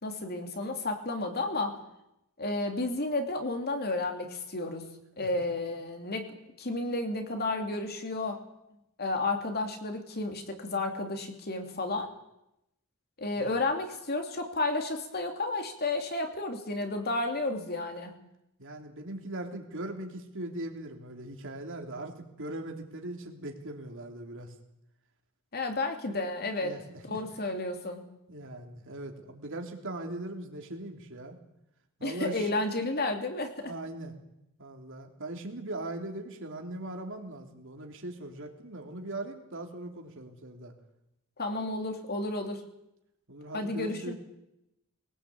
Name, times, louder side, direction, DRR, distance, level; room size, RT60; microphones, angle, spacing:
voice 1, 0.0-1.8 2.4-8.4 9.0-12.1 13.2-18.1 25.5-26.8 27.1-28.0 32.0-33.7 41.4-42.6 43.5-44.1, left 2 dB, 45° left, 5 dB, 2.9 m, -32 dB
voice 2, 18.6-24.5 26.6-27.2 28.3-31.4 32.0-32.5 33.6-34.1 34.6-40.7 43.3-44.1, right 1 dB, 60° right, 3 dB, 3.1 m, -40 dB
21.5 x 18.5 x 8.6 m, 0.86 s
head